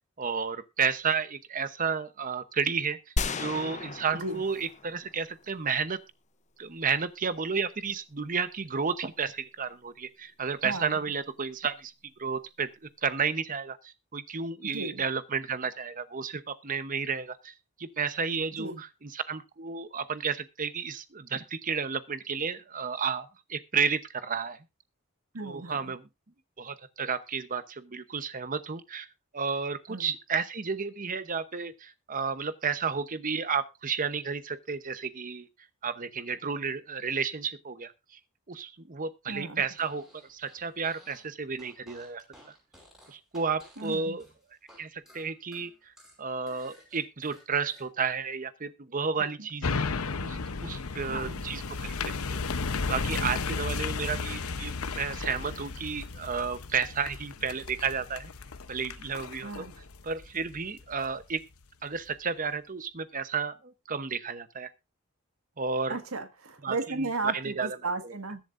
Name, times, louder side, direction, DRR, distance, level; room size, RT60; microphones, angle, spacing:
voice 1, 0.2-3.0 3.4-6.0 6.6-11.9 12.2-17.5 17.8-18.9 19.1-24.6 25.4-26.0 26.6-29.1 29.3-35.5 35.8-37.9 38.5-40.0 40.3-42.2 43.1-44.3 44.8-45.7 46.2-49.9 50.2-51.9 52.9-58.3 58.7-59.5 60.0-61.4 61.8-64.7 65.6-66.0 66.6-67.1 67.3-67.8, right 5 dB, 40° right, 12 dB, 0.9 m, -32 dB
sound 1, 3.2-5.4, left 3 dB, 35° left, 0.7 m, -34 dB
voice 2, 10.6-11.1 14.6-15.0 18.6-18.8 25.3-25.9 29.9-30.1 39.3-39.6 43.8-44.2 51.1-51.5 59.4-59.7 65.9-68.4, right 3 dB, 70° right, 7 dB, 1.8 m, -35 dB
Fart, 39.7-41.3 41.5-44.8 45.1-47.9, equal, 5° right, 5.4 m, -56 dB
sound 2, 49.6-61.1 61.5-61.6, left 4 dB, 80° left, 0.9 m, -34 dB
21.5 x 7.3 x 2.6 m, 0.25 s
head